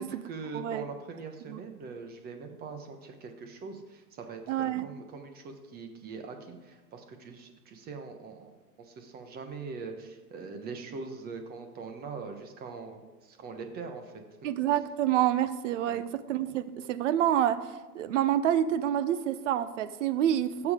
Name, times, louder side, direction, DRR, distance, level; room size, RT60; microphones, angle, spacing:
voice 1, 0.0-8.5 8.8-14.2 15.9-16.1, right 4 dB, 20° right, 6 dB, 1.1 m, -42 dB
voice 2, 4.5-4.9 14.4-20.7, right 11 dB, 50° right, 14 dB, 0.7 m, -28 dB
16.5 x 7.2 x 5.0 m, 1.2 s
hypercardioid pair, 150°, 48 cm